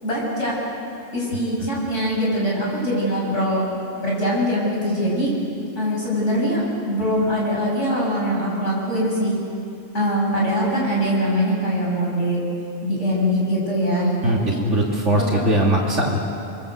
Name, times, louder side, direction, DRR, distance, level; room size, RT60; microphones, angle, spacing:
voice 1, 0.0-0.5 1.1-3.7 4.0-5.3 5.8-9.4 9.9-12.4 12.8-14.6 15.3-15.4, equal, 65° left, -4 dB, 7.7 m, -22 dB
voice 2, 14.2-16.2, right 1 dB, 65° right, -2 dB, 3.0 m, -20 dB
29.0 x 23.0 x 8.1 m, 2.6 s
omnidirectional pair, 1.3 m